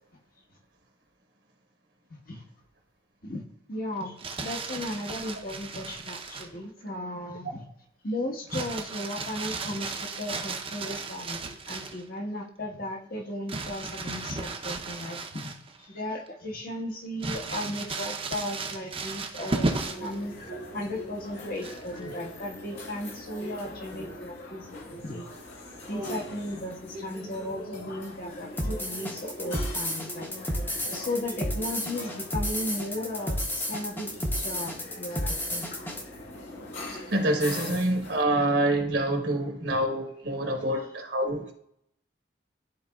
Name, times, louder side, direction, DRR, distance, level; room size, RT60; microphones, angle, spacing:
voice 1, 2.1-2.4 3.2-3.4 3.7-7.6 8.0-20.3 20.7-25.3 25.9-30.3 30.8-35.8, left 1 dB, 50° left, -1 dB, 1.4 m, -36 dB
Crumpling crinkling, 4.0-6.6 8.5-12.0 13.5-15.9 16.3-16.4 17.2-20.2 21.6-22.0, right 3 dB, 30° right, 0.7 m, -34 dB
sound 1, 19.7-38.2, left 1 dB, 70° left, 1.8 m, -42 dB
sound 2, 28.6-36.0, equal, 10° left, 0.8 m, -32 dB
voice 2, 36.9-41.5, right 1 dB, 65° right, 2 dB, 1.1 m, -26 dB
12.5 x 4.1 x 2.4 m, 0.72 s
head